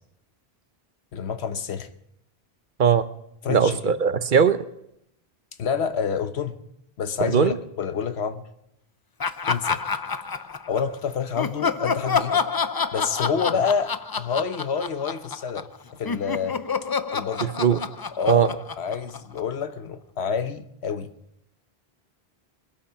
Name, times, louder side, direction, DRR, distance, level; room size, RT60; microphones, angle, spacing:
voice 1, 1.1-1.9 3.4-3.8 5.6-6.6 7.0-8.4 9.5-9.8 10.7-12.4 12.9-15.7 16.0-16.6 17.1-17.5 18.2-21.1, left 6 dB, 85° left, 11 dB, 1.2 m, -28 dB
voice 2, 3.5-4.6 7.2-7.5 17.4-17.8 18.3-18.5, right 7 dB, 55° right, 13 dB, 0.9 m, -19 dB
Laughter, 9.2-10.9 11.4-15.8 16.0-19.6, left 5 dB, 40° left, 0.3 m, -28 dB
21.5 x 8.6 x 5.7 m, 0.80 s
omnidirectional pair, 1.1 m